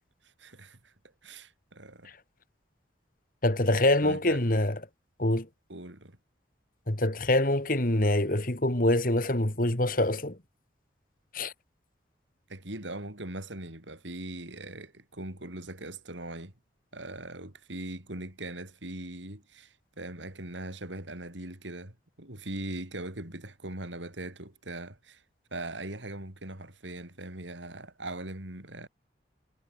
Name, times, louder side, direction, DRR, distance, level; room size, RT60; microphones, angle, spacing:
voice 1, 0.4-0.9 1.2-2.1 4.0-4.4 5.7-6.2 12.5-16.5 16.9-25.2 25.5-28.9, right 1 dB, 90° right, 5.5 m, -40 dB
voice 2, 3.4-4.8 5.2-5.5 6.9-10.4 11.3-11.5, left 1 dB, 50° left, 2.4 m, -25 dB
head